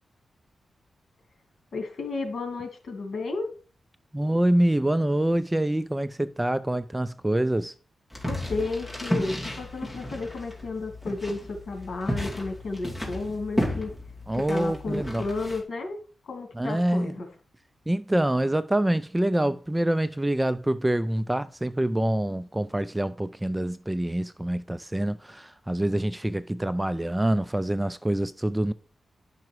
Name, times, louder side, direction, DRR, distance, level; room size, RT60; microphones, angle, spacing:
voice 1, 1.7-3.5 8.2-13.9 14.5-16.0 16.3-17.3, left 3 dB, 60° left, 2.6 m, -32 dB
voice 2, 4.1-7.7 14.3-15.2 16.5-17.2 17.9-28.7, right 1 dB, 10° right, 0.4 m, -26 dB
sound 1, 8.1-15.6, left 1 dB, 5° left, 2.6 m, -33 dB
10.5 x 5.9 x 4.6 m
wide cardioid pair, 125°, 0 cm